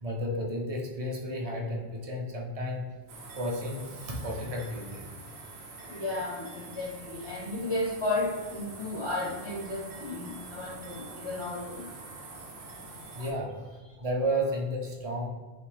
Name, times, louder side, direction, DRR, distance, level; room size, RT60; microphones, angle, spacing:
voice 1, 0.0-2.9 3.3-5.0 12.8-15.3, equal, 45° right, -1 dB, 0.6 m, -33 dB
sound 1, 3.1-13.3, right 3 dB, 80° right, 0.9 m, -45 dB
voice 2, 5.9-11.9 12.7-12.8, left 2 dB, 40° left, -3 dB, 0.4 m, -33 dB
3.3 x 3.0 x 3.2 m, 1.3 s
omnidirectional pair, 1.0 m